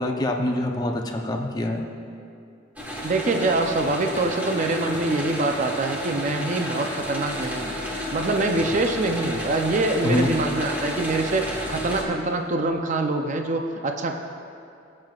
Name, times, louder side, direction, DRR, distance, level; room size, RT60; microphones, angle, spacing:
voice 1, 0.0-1.8 10.0-10.3, left 1 dB, 20° left, 2 dB, 0.7 m, -25 dB
sound 1, 2.8-12.0, equal, 10° right, 1.4 m, -31 dB
voice 2, 3.0-14.2, right 2 dB, 40° right, 4 dB, 0.5 m, -25 dB
18.0 x 7.6 x 2.4 m, 2.5 s
head